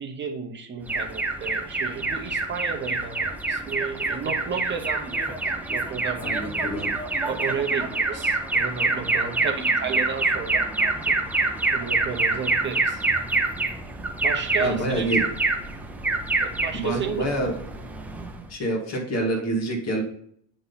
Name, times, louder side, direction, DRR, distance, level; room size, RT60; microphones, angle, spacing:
voice 1, 0.0-5.4 5.7-6.3 7.2-13.0 14.2-15.1 16.4-17.3, right 6 dB, 25° right, 4 dB, 0.9 m, -33 dB
Alarm, 0.9-18.5, right 3 dB, 5° right, 0.3 m, -26 dB
voice 2, 6.2-6.9 14.6-15.2 16.7-17.5 18.5-20.0, right 1 dB, 30° left, 0 dB, 2.1 m, -27 dB
9.2 x 3.9 x 4.0 m, 0.64 s
supercardioid pair, 130°, 49 cm